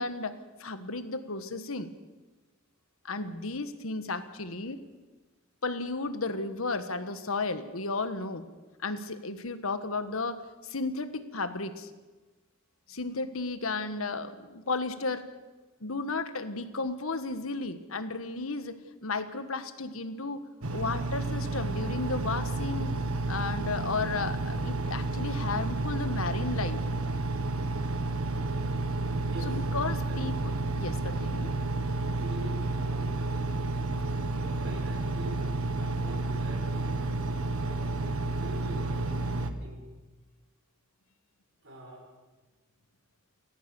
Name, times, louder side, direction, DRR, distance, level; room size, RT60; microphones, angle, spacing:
voice 1, 0.0-1.9 3.0-4.8 5.6-8.5 8.8-11.9 12.9-15.3 15.8-20.4 20.7-22.9 23.3-26.8 29.4-31.5, left 3 dB, 70° left, 10 dB, 1.5 m, -34 dB
Engine, 20.6-39.5, right 2 dB, 85° right, 1.6 m, -31 dB
voice 2, 29.3-29.6 30.1-30.2 31.9-33.1 34.3-37.2 37.5-38.1 38.3-39.8 41.6-42.1, right 1 dB, 60° right, 1 dB, 6.2 m, -45 dB
29.0 x 14.0 x 6.9 m, 1.2 s
head